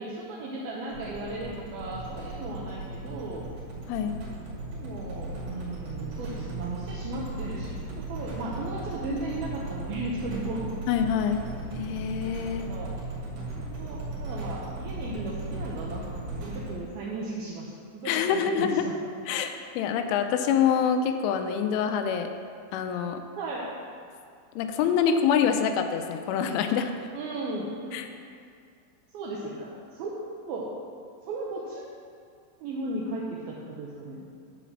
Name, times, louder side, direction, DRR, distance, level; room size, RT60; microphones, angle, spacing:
voice 1, 0.0-3.5 4.7-10.7 12.6-13.0 13.6-19.0 23.4-23.7 27.1-28.0 29.1-30.1 30.5-30.7 31.3-31.9 32.6-34.3, right 2 dB, 80° right, -4 dB, 2.2 m, -36 dB
sound 1, 0.9-16.7, right 2 dB, 60° right, 4.0 m, -37 dB
voice 2, 10.9-11.4 11.8-12.7 18.1-18.8 19.3-22.3 22.7-23.2 24.6-26.9 27.9-28.0, left 7 dB, 90° left, 7 dB, 3.1 m, -26 dB
11.0 x 4.2 x 7.2 m, 2.3 s
omnidirectional pair, 5.5 m